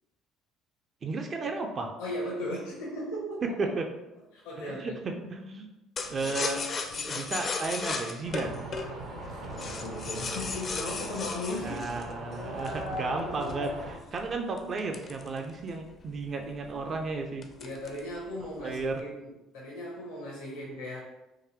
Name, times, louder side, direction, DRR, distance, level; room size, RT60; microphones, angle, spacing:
voice 1, 1.0-1.9 3.4-3.9 4.7-5.7 6.1-6.7 7.0-8.6 11.6-17.5 18.4-19.0, right 3 dB, 40° right, 3 dB, 0.4 m, -33 dB
voice 2, 2.0-3.5 4.3-5.0 6.0-6.4 9.3-12.0 12.4-13.8 17.6-21.0, left 1 dB, 75° left, -4 dB, 0.8 m, -37 dB
sound 1, 6.0-12.9 13.4-15.9 16.2-16.3 16.6-17.0 17.4-18.1 18.4-19.0, left 4 dB, 45° left, 0.5 m, -36 dB
sound 2, 8.3-14.0, right 1 dB, 80° right, 1.2 m, -41 dB
3.8 x 2.6 x 2.9 m, 0.98 s
hypercardioid pair, 55°, 0 cm